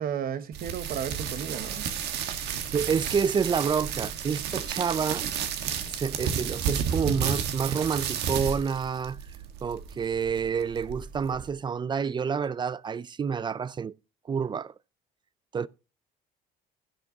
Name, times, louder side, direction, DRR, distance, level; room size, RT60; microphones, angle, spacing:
voice 1, 0.0-1.9, right 9 dB, 60° right, 1.2 m, -33 dB
sound 1, 0.5-11.5, right 8 dB, 80° right, 1.5 m, -32 dB
voice 2, 2.7-5.3 5.9-9.2 9.6-13.9 14.3-14.7 15.5-15.7, right 6 dB, 25° right, 0.5 m, -28 dB
16.5 x 7.1 x 2.8 m
cardioid pair, 110°, 17 cm